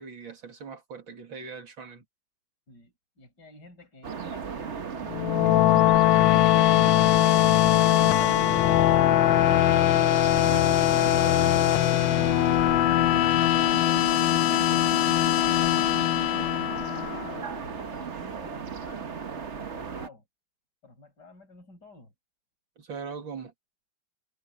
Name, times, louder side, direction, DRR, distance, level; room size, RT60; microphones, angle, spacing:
voice 1, 0.0-2.0 10.4-11.6 22.8-23.5, right 5 dB, 75° right, 3.6 m, -41 dB
voice 2, 2.7-4.8 15.7-20.2 20.8-22.1, left 3 dB, 55° left, 7.3 m, -51 dB
sound 1, 4.0-20.1, right 6 dB, 40° right, 1.3 m, -36 dB
sound 2, 5.1-17.4, left 14 dB, 75° left, 1.4 m, -21 dB
omnidirectional pair, 2.1 m